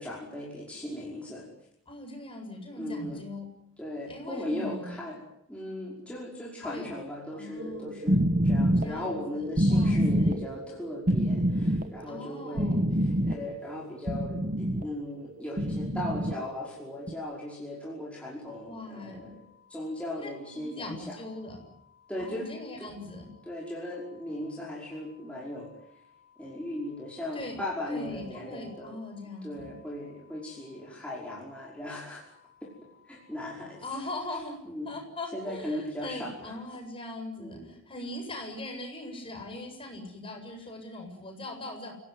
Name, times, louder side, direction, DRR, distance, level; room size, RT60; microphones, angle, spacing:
voice 1, 0.0-1.5 2.8-3.2 3.8-5.2 5.5-19.4 19.7-21.2 22.1-22.5 22.8-22.9 23.5-25.7 26.4-29.0 29.4-32.3 32.6-32.7 33.1-33.8 34.7-34.9 35.3-36.8 37.4-37.7, left 1 dB, 5° left, -4 dB, 5.4 m, -38 dB
voice 2, 1.9-3.4 4.1-5.0 6.6-6.9 7.3-8.0 8.8-10.4 12.0-12.9 18.7-19.3 20.2-21.6 22.2-23.3 27.3-27.6 27.9-29.7 33.8-34.6 34.8-41.9, left 1 dB, 25° left, 3 dB, 7.8 m, -40 dB
sound 1, 7.6-14.8 15.5-16.3 17.0-17.1, equal, 40° right, 1.3 m, -26 dB
sound 2, 18.5-34.3, left 8 dB, 85° left, 5.5 m, -62 dB
30.0 x 18.0 x 9.7 m, 0.76 s
head